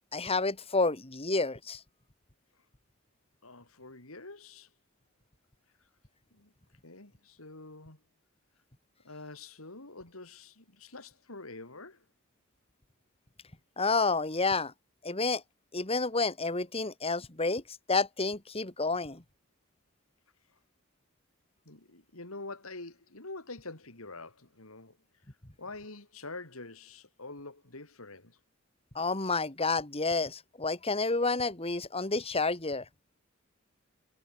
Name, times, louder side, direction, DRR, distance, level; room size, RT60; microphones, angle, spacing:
voice 1, 0.1-1.8 13.8-14.7 15.0-15.4 15.7-17.6 17.9-19.2 28.9-32.8, left 3 dB, 30° left, 2.3 m, -29 dB
voice 2, 3.4-4.7 6.3-6.5 6.8-8.0 9.0-12.0 21.7-25.0 25.6-28.4, left 3 dB, 80° left, 4.1 m, -46 dB
head